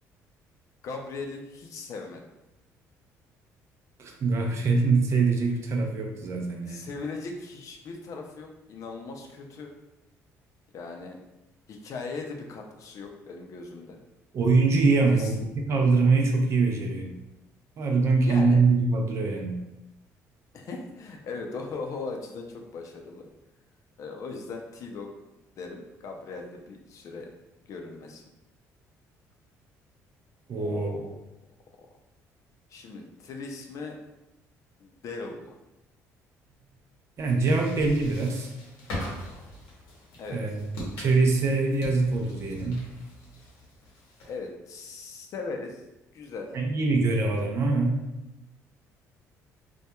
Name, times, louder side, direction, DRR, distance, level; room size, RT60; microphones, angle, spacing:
voice 1, 0.8-2.2 6.7-9.7 10.7-11.2 11.7-14.0 15.1-15.3 18.2-18.6 20.5-23.3 24.0-25.1 25.6-27.3 27.7-28.2 30.6-31.1 32.7-34.0 34.8-35.5 40.2-40.6 44.3-45.8 46.1-46.5, left 4 dB, 60° left, 3 dB, 0.4 m, -38 dB
voice 2, 4.0-6.8 14.3-17.1 17.8-19.6 30.5-31.0 37.2-38.5 40.3-42.8 46.5-48.0, right 3 dB, 50° right, 2 dB, 0.5 m, -24 dB
sound 1, 37.2-44.5, left 1 dB, 90° left, 0.8 m, -41 dB
2.9 x 2.2 x 2.2 m, 0.95 s
cardioid pair, 95°, 6 cm